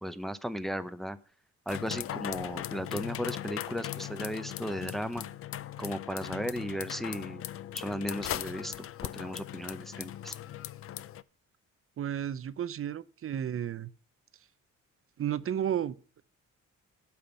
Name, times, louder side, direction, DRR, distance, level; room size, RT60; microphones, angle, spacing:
voice 1, 0.0-1.2 1.7-5.3 5.8-7.4 7.7-8.7 9.1-10.4, equal, ahead, 0.7 m, -36 dB
sound 1, 1.7-11.2, left 11 dB, 50° left, 0.5 m, -39 dB
voice 2, 12.0-13.9 15.2-16.2, right 10 dB, 45° right, 0.7 m, -33 dB
8.7 x 5.8 x 7.0 m
cardioid pair, 90°, 30 cm